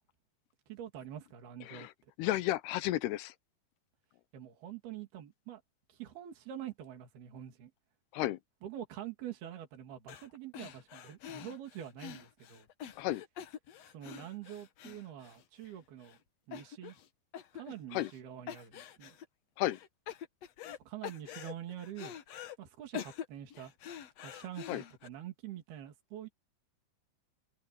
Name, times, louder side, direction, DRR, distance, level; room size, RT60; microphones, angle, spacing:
voice 1, 0.7-1.9 4.3-5.6 5.9-7.7 8.6-12.7 13.9-16.2 16.5-17.0 17.5-19.2 20.8-22.1 22.6-23.7 24.2-26.3, right 11 dB, 75° right, 4.6 m, -45 dB
voice 2, 2.2-3.3 8.1-8.4 13.0-13.2 17.9-18.1 19.6-19.8 24.7-24.8, left 15 dB, 85° left, 2.9 m, -32 dB
sound 1, 10.1-10.3 10.5-15.7 16.0-16.2 16.5-17.1 17.3-18.2 18.5-19.2 19.7-20.8 21.0-22.6 22.9-25.1, left 9 dB, 65° left, 1.7 m, -46 dB
omnidirectional pair, 4.6 m